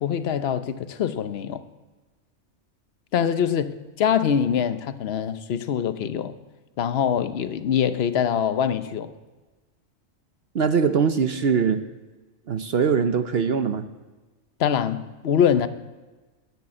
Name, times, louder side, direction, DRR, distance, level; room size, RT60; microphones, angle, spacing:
voice 1, 0.0-1.6 3.1-6.3 6.8-9.1 14.6-15.7, left 8 dB, 55° left, 0.9 m, -24 dB
voice 2, 10.5-11.8 12.5-13.9, right 6 dB, 55° right, 0.9 m, -22 dB
10.5 x 10.5 x 8.6 m
omnidirectional pair, 1.4 m